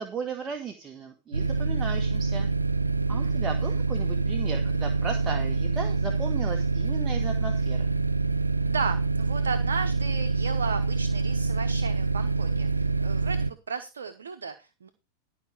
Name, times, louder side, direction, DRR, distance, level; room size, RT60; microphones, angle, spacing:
voice 1, 0.0-2.5 3.1-7.9, right 5 dB, 20° right, 3 dB, 1.5 m, -36 dB
sound 1, 1.3-13.5, right 4 dB, 85° right, 0.4 m, -26 dB
voice 2, 8.6-14.9, right 5 dB, 70° right, 6 dB, 1.0 m, -35 dB
12.0 x 5.1 x 6.2 m, 0.29 s
figure-of-eight pair, 90°, 0 cm